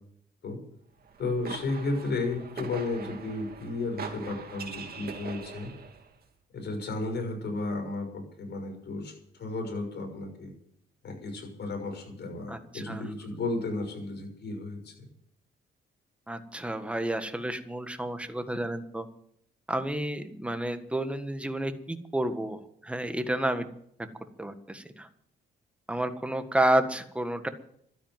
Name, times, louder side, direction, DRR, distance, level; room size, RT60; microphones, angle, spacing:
sound 1, 1.0-6.1, right 5 dB, 50° right, 2.6 m, -42 dB
voice 1, 1.2-5.7 6.5-9.1 9.4-10.5 11.0-14.9, left 3 dB, 60° left, 4 dB, 6.4 m, -33 dB
voice 2, 12.5-13.0 16.3-19.1 19.7-23.7 24.4-25.1 25.9-27.5, right 1 dB, 5° right, 8 dB, 1.6 m, -30 dB
12.5 x 10.0 x 9.3 m, 0.68 s
cardioid pair, 90°, 20 cm